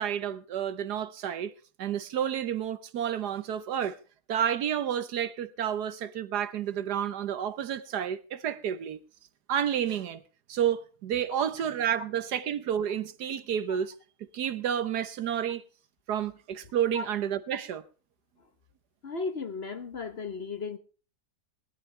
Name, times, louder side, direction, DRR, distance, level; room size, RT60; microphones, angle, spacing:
voice 1, 0.0-1.5 1.8-4.0 4.3-9.0 9.5-10.2 10.5-13.9 14.3-15.6 16.1-17.8, right 9 dB, 75° right, 1.5 m, -30 dB
voice 2, 19.0-20.8, left 4 dB, 45° left, 1.1 m, -35 dB
19.0 x 13.0 x 3.3 m
omnidirectional pair, 1.8 m